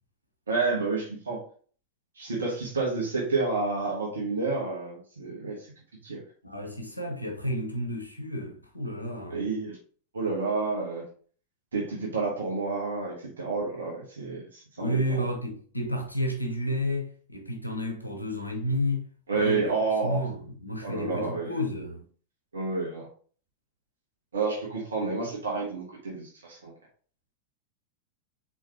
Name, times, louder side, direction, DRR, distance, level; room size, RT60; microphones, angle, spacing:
voice 1, 0.5-1.4 2.2-5.7 6.0-6.2 9.3-9.8 10.1-11.0 11.7-15.2 19.3-20.2 20.8-21.6 22.5-23.1 24.3-26.7, right 3 dB, 70° right, 1.2 m, -29 dB
voice 2, 6.4-9.5 14.8-19.1 19.3-19.7 20.0-22.0, equal, 90° left, 0.7 m, -31 dB
4.4 x 3.9 x 2.8 m
figure-of-eight pair, 90°, 0 cm